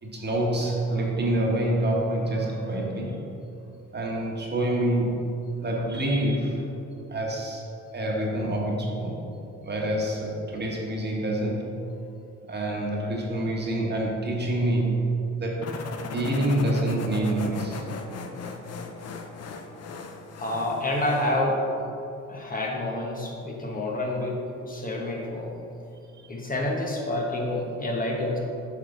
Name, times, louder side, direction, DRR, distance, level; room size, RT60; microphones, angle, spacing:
voice 1, 0.0-3.2 3.9-6.7 7.1-7.6 7.9-9.2 9.6-11.7 12.5-15.8 16.1-17.8, right 1 dB, 35° right, -2 dB, 1.4 m, -27 dB
sound 1, 15.6-21.4, left 4 dB, 55° left, 0.7 m, -37 dB
voice 2, 20.4-21.6 22.3-25.5 26.3-28.4, left 1 dB, 30° left, -1 dB, 1.1 m, -28 dB
8.3 x 5.0 x 3.9 m, 2.7 s
cardioid pair, 90°, 30 cm